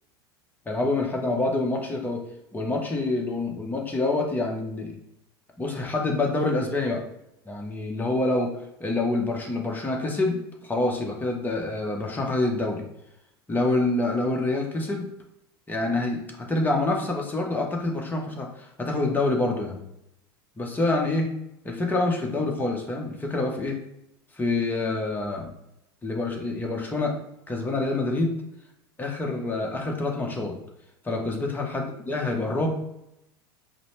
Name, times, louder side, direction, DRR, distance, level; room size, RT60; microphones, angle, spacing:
voice 1, 0.7-2.2 2.5-5.0 5.6-7.0 7.5-8.5 8.8-12.8 13.5-15.1 15.7-19.8 20.6-21.3 21.6-23.8 24.4-25.5 26.0-27.1 27.5-28.3 29.0-30.6 31.0-32.7, left 2 dB, 15° left, 0 dB, 1.0 m, -26 dB
5.2 x 2.1 x 3.2 m, 0.83 s
hypercardioid pair, 80°, 13 cm